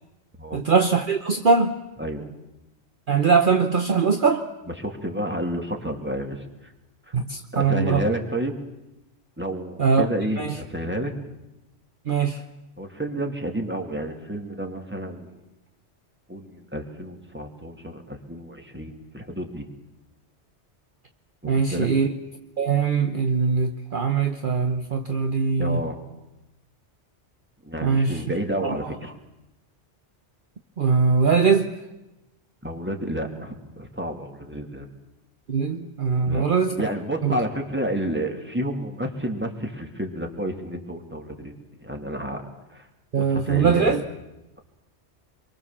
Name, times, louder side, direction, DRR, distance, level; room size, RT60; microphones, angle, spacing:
voice 1, 0.5-1.7 3.1-4.4 7.1-8.1 9.8-10.1 10.4-10.6 12.1-12.4 21.4-22.1 22.6-25.8 27.8-28.2 28.6-28.8 30.8-31.7 35.5-36.8 37.2-37.3 43.1-44.0, right 5 dB, 50° right, 6 dB, 1.2 m, -21 dB
voice 2, 4.7-6.5 7.5-8.5 9.4-11.1 12.3-12.4 12.8-15.4 16.3-19.6 21.4-21.9 25.6-26.0 27.6-29.1 32.6-34.9 36.2-36.4 36.8-41.5 41.8-42.4 42.7-42.9 43.1-44.0, right 1 dB, 10° right, 3 dB, 2.6 m, -30 dB
27.0 x 23.5 x 7.3 m, 0.96 s
omnidirectional pair, 1.2 m